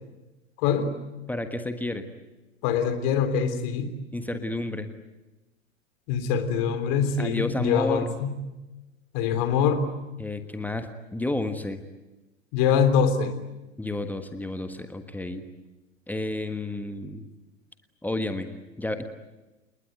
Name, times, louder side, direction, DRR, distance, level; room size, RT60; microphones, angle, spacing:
voice 1, 0.6-0.9 2.6-3.9 6.1-8.4 9.1-9.8 12.5-13.3, left 7 dB, 40° left, 8 dB, 3.6 m, -24 dB
voice 2, 1.3-2.1 4.1-4.9 7.2-8.1 10.2-11.8 13.8-15.4 16.1-17.3 18.0-18.5 18.8-19.0, left 2 dB, 5° left, 8 dB, 1.4 m, -31 dB
29.5 x 20.0 x 9.4 m, 1.1 s
figure-of-eight pair, 95°, 38 cm